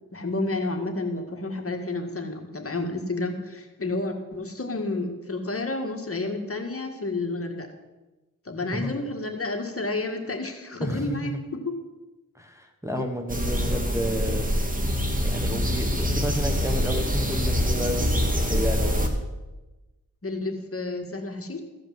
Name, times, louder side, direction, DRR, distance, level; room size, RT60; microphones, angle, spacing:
voice 1, 0.1-7.7 8.5-11.7 13.0-13.1 20.2-21.6, left 2 dB, 40° left, 3 dB, 1.9 m, -30 dB
voice 2, 10.8-11.4 12.3-14.6 15.2-19.2, equal, 10° right, 5 dB, 1.5 m, -31 dB
sound 1, 13.3-19.1, equal, 25° right, 2.0 m, -25 dB
15.0 x 5.1 x 7.7 m, 1.1 s
cardioid pair, 50°, 34 cm